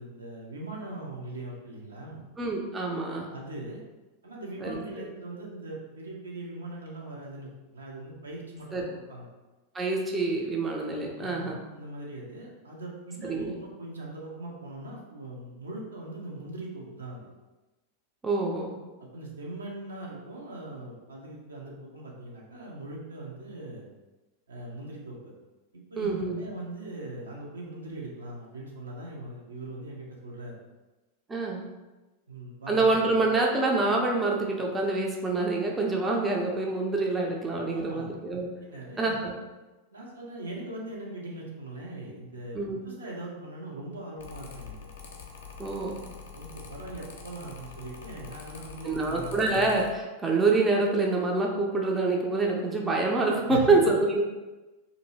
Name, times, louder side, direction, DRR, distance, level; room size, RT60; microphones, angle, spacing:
voice 1, 0.0-2.2 3.3-3.8 4.2-9.3 11.1-17.3 19.1-23.8 24.5-25.3 25.9-30.6 32.3-32.9 37.6-38.1 38.7-39.2 39.9-42.6 42.8-44.9 46.3-49.5 53.5-53.9, right 2 dB, 75° right, -3 dB, 0.6 m, -40 dB
voice 2, 2.4-3.3 4.6-5.1 8.7-8.8 9.7-11.6 13.2-13.5 18.2-18.8 26.0-26.4 31.3-31.6 32.7-38.5 39.0-39.3 42.5-42.8 45.6-46.0 48.8-54.2, right 3 dB, 15° right, -1 dB, 0.4 m, -26 dB
Mechanical fan, 44.2-49.9, left 5 dB, 60° left, 0.4 m, -45 dB
2.6 x 2.6 x 2.9 m, 1.1 s
figure-of-eight pair, 90°, 0 cm